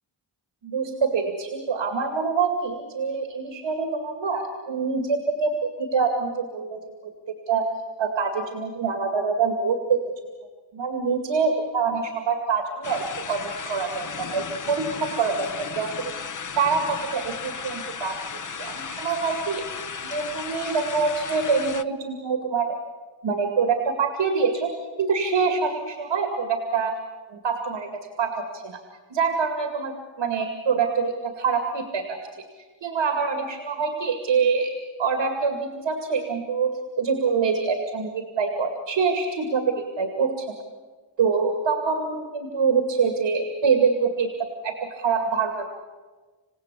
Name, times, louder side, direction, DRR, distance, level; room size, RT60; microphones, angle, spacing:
voice 1, 0.6-7.1 7.5-7.7 8.0-10.0 10.7-16.1 16.6-19.6 20.0-22.8 23.2-24.7 25.0-27.0 27.3-28.8 29.1-32.4 32.8-34.7 35.0-40.5 41.2-45.7, right 5 dB, 85° right, 5 dB, 2.4 m, -25 dB
sound 1, 12.8-21.8, left 6 dB, 45° left, 0.9 m, -35 dB
28.0 x 16.5 x 8.4 m, 1.4 s
cardioid pair, 55°, 44 cm